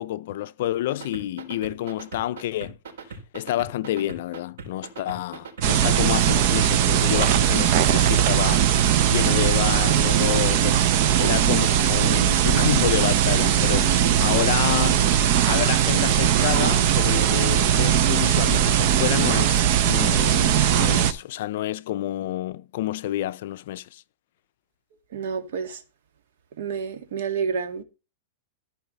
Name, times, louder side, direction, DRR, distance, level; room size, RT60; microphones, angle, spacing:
voice 1, 0.0-2.8 3.3-10.8 11.2-15.1 15.5-24.0, left 14 dB, 55° left, 0.6 m, -29 dB
sound 1, 0.9-8.5 8.8-11.1 11.4-13.7 14.1-14.2 14.7-15.4 15.8-16.5 16.9-17.6 18.1-18.2 18.6-18.7 19.2-19.3, right 4 dB, 80° right, 3.6 m, -39 dB
sound 2, 5.6-21.1, right 10 dB, 40° right, 0.8 m, -20 dB
voice 2, 25.1-25.8 26.6-27.8, right 6 dB, 65° right, 1.8 m, -29 dB
14.0 x 4.8 x 5.4 m
supercardioid pair, 160°, 0 cm